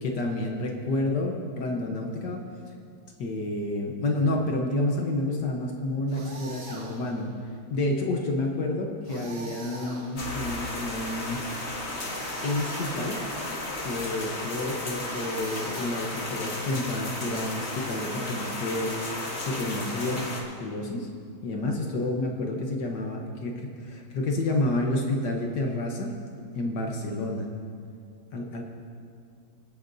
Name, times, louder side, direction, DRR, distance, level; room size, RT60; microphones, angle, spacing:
voice 1, 0.0-2.4 3.2-7.3 7.7-11.4 12.4-13.2 13.8-19.0 19.5-20.2 20.6-21.1 21.4-26.1 26.5-27.5 28.3-28.6, left 2 dB, 60° left, 1 dB, 1.4 m, -29 dB
sound 1, 6.1-7.2 9.0-10.5 12.0-13.3 15.0-16.4, right 3 dB, 65° right, 2.7 m, -43 dB
sound 2, 10.2-20.4, left 2 dB, 35° left, 1.3 m, -34 dB
24.5 x 8.6 x 2.7 m, 2.3 s
omnidirectional pair, 2.4 m